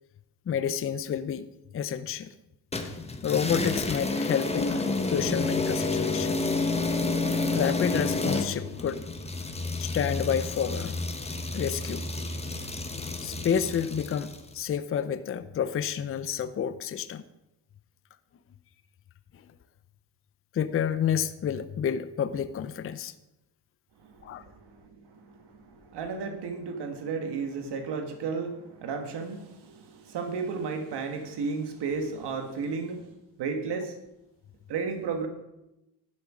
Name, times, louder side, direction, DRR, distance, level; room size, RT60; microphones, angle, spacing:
voice 1, 0.5-1.5 1.7-2.3 3.2-6.4 7.5-9.0 9.8-10.9 11.5-12.0 13.2-17.2 20.5-23.1 24.2-24.4, left 8 dB, 35° left, 12 dB, 0.5 m, -29 dB
sound 1, 2.7-14.5, left 3 dB, 15° left, 1.0 m, -30 dB
voice 2, 24.0-33.1 33.4-33.9 34.7-35.3, right 5 dB, 75° right, 6 dB, 1.4 m, -33 dB
11.0 x 7.2 x 6.0 m, 0.91 s
cardioid pair, 125°, 41 cm